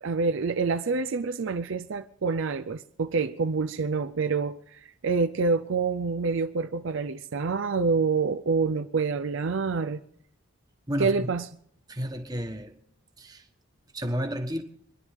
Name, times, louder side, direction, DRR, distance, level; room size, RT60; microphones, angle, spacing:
voice 1, 0.0-10.0 11.0-11.4, right 4 dB, 60° right, 0.5 m, -27 dB
voice 2, 10.9-11.3 11.9-12.8 13.2-13.5 13.9-14.6, equal, 20° right, 1.3 m, -31 dB
26.5 x 11.0 x 3.6 m
head